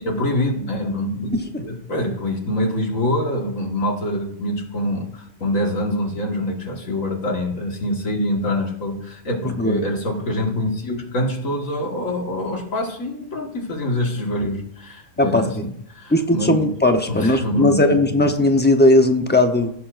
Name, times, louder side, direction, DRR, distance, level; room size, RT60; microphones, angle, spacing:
voice 1, 0.0-16.7 17.1-18.3, left 1 dB, 85° left, 1 dB, 2.1 m, -25 dB
voice 2, 9.4-9.8 15.2-15.4 16.1-19.7, left 1 dB, 10° left, 5 dB, 0.7 m, -17 dB
16.5 x 6.9 x 2.6 m, 0.68 s
omnidirectional pair, 1.4 m